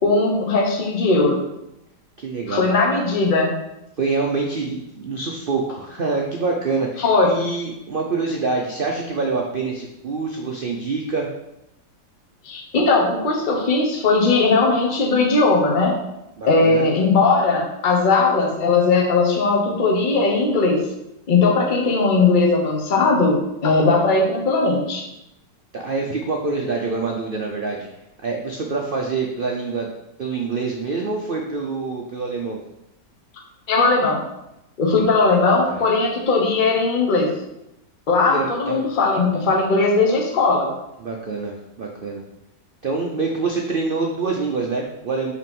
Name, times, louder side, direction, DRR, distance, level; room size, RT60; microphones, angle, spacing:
voice 1, 0.0-1.4 2.5-3.5 7.0-7.3 12.4-16.0 16.4-20.8 21.3-25.1 33.7-34.2 34.8-37.3 38.1-40.7, left 3 dB, 35° left, 0 dB, 1.0 m, -18 dB
voice 2, 2.2-2.6 4.0-11.3 16.4-16.9 25.7-27.9 28.2-29.9 30.2-32.6 35.7-35.8 38.3-38.8 41.0-42.2 42.8-45.3, right 4 dB, 85° right, 0 dB, 0.4 m, -26 dB
5.5 x 4.1 x 5.3 m, 0.88 s
omnidirectional pair, 2.0 m